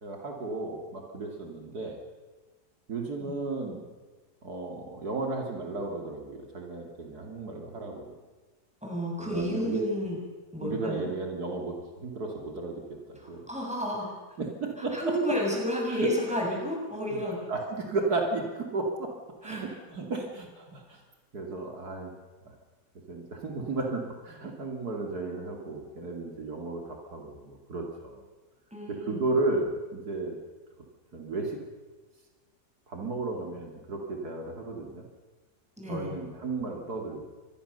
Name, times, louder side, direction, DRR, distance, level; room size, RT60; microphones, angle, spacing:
voice 1, 0.0-2.0 2.9-3.8 4.4-8.1 9.2-9.8 10.6-12.8 13.1-13.4 14.4-15.4 15.9-16.1 17.1-17.2 17.5-19.1 19.4-21.0 21.3-22.1 22.4-22.5 23.1-28.2 28.9-30.4 31.1-31.6 32.9-35.1 35.9-37.2, right 3 dB, 70° right, 2 dB, 3.0 m, -34 dB
voice 2, 8.8-10.2 10.5-11.1 13.2-14.1 14.8-17.4 19.4-19.6 28.7-29.2 35.8-36.1, equal, 5° right, -2 dB, 7.1 m, -31 dB
25.5 x 21.0 x 6.8 m, 1.3 s
omnidirectional pair, 1.7 m